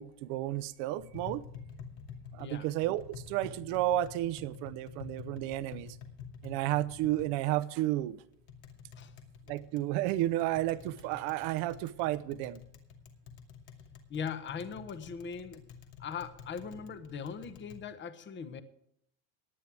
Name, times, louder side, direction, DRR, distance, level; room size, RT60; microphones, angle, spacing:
voice 1, 0.0-1.4 2.4-3.0 3.3-5.9 6.4-8.1 9.5-12.6, right 15 dB, 65° right, 0.9 m, -32 dB
Tap, 1.0-17.8, left 6 dB, 60° left, 2.6 m, -49 dB
voice 2, 14.1-15.6 16.0-18.6, left 6 dB, 25° left, 1.0 m, -40 dB
17.5 x 10.5 x 3.5 m
cardioid pair, 150°, 45 cm